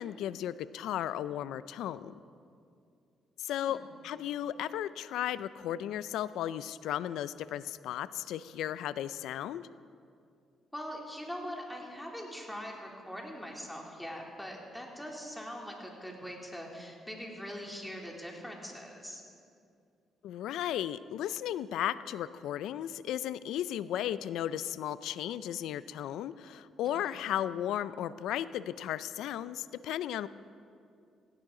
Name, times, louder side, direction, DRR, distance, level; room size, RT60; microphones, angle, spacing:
voice 1, 0.0-2.1 3.4-9.7 20.2-30.3, left 11 dB, 85° left, 16 dB, 0.4 m, -35 dB
voice 2, 10.7-19.2 27.0-27.2, equal, 5° left, -1 dB, 2.9 m, -42 dB
17.0 x 16.5 x 3.8 m, 2.4 s
cardioid pair, 90°, 0 cm